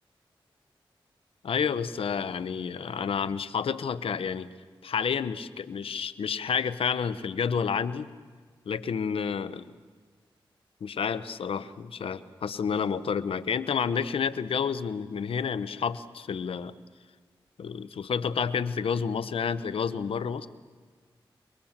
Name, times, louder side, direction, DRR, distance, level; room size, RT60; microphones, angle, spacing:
voice 1, 1.4-4.5 4.8-8.1 8.7-9.7 10.8-16.7 17.6-20.5, left 6 dB, 85° left, 14 dB, 0.9 m, -30 dB
29.0 x 22.0 x 7.4 m, 1.5 s
cardioid pair, 45°, 9 cm